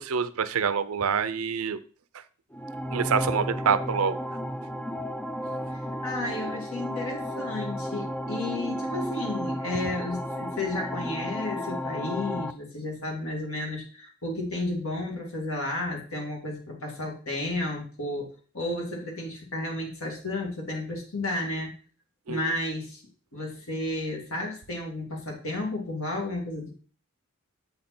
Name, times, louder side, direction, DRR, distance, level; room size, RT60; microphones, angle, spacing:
voice 1, 0.0-1.8 2.9-4.2 22.3-22.5, right 6 dB, 75° right, 14 dB, 0.6 m, -26 dB
sound 1, 2.5-12.5, equal, 5° left, 0.3 m, -33 dB
voice 2, 5.7-21.7 22.3-23.0 23.3-26.7, left 2 dB, 70° left, 0 dB, 2.5 m, -32 dB
8.0 x 5.2 x 4.4 m, 0.40 s
head